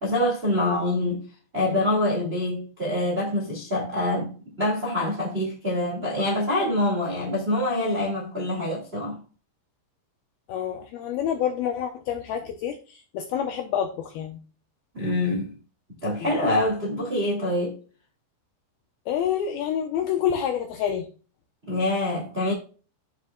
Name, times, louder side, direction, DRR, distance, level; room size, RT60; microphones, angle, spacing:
voice 1, 0.0-1.2 1.5-4.3 4.6-9.2 14.9-15.6 16.0-17.8 21.7-22.5, left 1 dB, 45° right, 0.7 m, -25 dB
voice 2, 10.5-14.4 16.2-16.3 19.1-21.1, left 9 dB, 85° left, 2.2 m, -28 dB
12.5 x 6.1 x 2.3 m
omnidirectional pair, 5.3 m